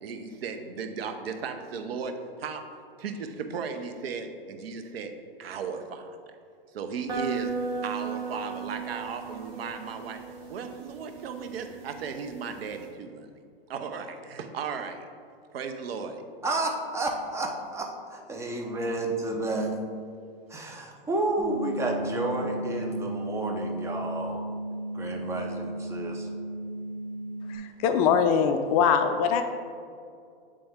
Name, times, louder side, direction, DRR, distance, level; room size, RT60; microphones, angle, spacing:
voice 1, 0.0-2.6 3.0-5.1 5.4-6.2 6.7-7.5 7.8-10.2 10.5-13.3 13.7-15.0 15.5-16.2, right 5 dB, 75° right, 6 dB, 0.7 m, -36 dB
sound 1, 7.1-12.9, right 5 dB, 40° right, 1.2 m, -36 dB
voice 2, 16.4-19.7 20.5-24.4 24.9-26.3, right 2 dB, 10° right, 1 dB, 0.6 m, -31 dB
sound 2, 21.4-27.6, right 1 dB, 20° left, 1.2 m, -35 dB
voice 3, 27.5-29.4, left 7 dB, 40° left, 7 dB, 0.4 m, -23 dB
8.7 x 3.4 x 3.5 m, 2.3 s
hypercardioid pair, 125°, 30 cm